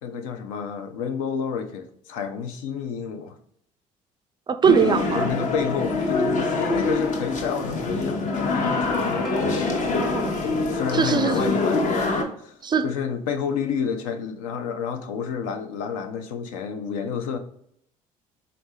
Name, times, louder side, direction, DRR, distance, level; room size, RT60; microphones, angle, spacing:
voice 1, 0.0-3.4 4.8-8.2 8.5-9.4 10.6-12.1 12.4-12.6 12.8-17.4, left 6 dB, 75° left, 0.6 m, -30 dB
voice 2, 4.5-5.3 10.0-10.4 10.9-11.6 12.6-12.8, right 6 dB, 25° right, 0.3 m, -21 dB
sound 1, 4.6-12.2, left 3 dB, 45° left, 0.8 m, -25 dB
Plucked string instrument, 9.3-12.0, left 2 dB, ahead, 0.7 m, -41 dB
3.9 x 3.3 x 2.7 m
hypercardioid pair, 55°, 18 cm